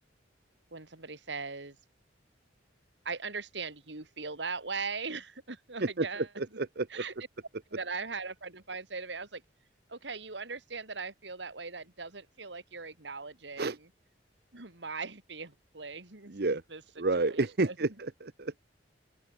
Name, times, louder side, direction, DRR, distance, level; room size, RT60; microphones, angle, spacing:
voice 1, 0.7-1.8 3.0-6.3 6.9-7.1 7.7-9.4 9.9-13.9 14.5-17.8, right 4 dB, 75° right, 2.8 m, -40 dB
voice 2, 6.4-7.0 13.6-13.8 16.3-16.6 17.0-18.6, right 3 dB, 60° right, 0.9 m, -30 dB
open air
head